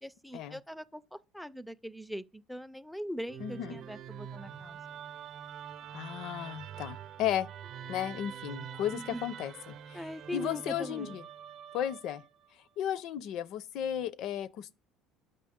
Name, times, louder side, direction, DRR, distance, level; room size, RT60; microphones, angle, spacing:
voice 1, 0.0-4.8 8.9-9.3 9.9-11.2, equal, ahead, 0.3 m, -41 dB
Musical instrument, 3.3-12.5, right 8 dB, 50° right, 0.6 m, -45 dB
voice 2, 3.4-3.8 5.9-7.5 7.9-10.0 10.3-11.2 11.7-12.2 12.8-14.7, left 10 dB, 55° left, 0.5 m, -34 dB
6.7 x 5.7 x 3.6 m
cardioid pair, 145°, 0 cm